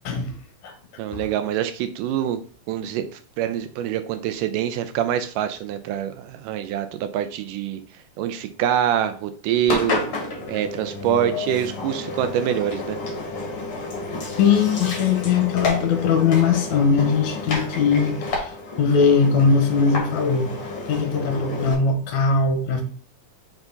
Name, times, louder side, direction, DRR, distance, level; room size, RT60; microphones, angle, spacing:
voice 1, 0.0-0.4 0.6-0.7 1.1-1.2 14.4-20.5 20.9-22.8, left 5 dB, 65° left, 5 dB, 2.2 m, -20 dB
voice 2, 1.0-2.4 2.7-3.0 3.4-7.8 8.2-10.0 10.5-13.0, right 10 dB, 80° right, 10 dB, 2.1 m, -25 dB
Engine, 9.7-21.7, left 2 dB, 45° left, 2.3 m, -30 dB
5.7 x 4.6 x 3.9 m, 0.42 s
omnidirectional pair, 3.9 m